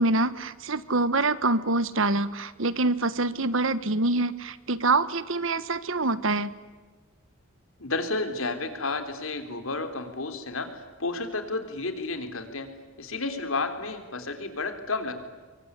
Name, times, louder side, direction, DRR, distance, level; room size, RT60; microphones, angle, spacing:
voice 1, 0.0-6.5, right 2 dB, 65° right, 15 dB, 1.3 m, -25 dB
voice 2, 7.8-12.7 13.0-15.2, left 3 dB, 70° left, 7 dB, 3.6 m, -31 dB
25.0 x 24.0 x 9.8 m, 1.4 s
head